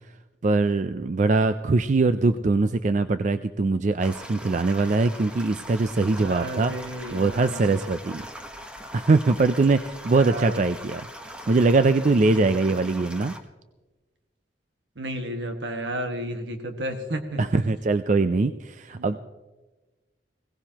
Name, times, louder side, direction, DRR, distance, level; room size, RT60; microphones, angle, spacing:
voice 1, 0.4-6.7 7.1-8.2 8.9-11.0 11.5-13.3 17.4-19.2, right 3 dB, 45° right, 11 dB, 0.4 m, -22 dB
sound 1, 4.0-13.4, equal, 5° right, 1.0 m, -41 dB
voice 2, 6.2-7.8 10.1-10.6 12.3-12.9 15.0-17.4 18.9-19.2, right 1 dB, 75° right, 5 dB, 1.7 m, -33 dB
21.0 x 17.5 x 2.9 m, 1.2 s
head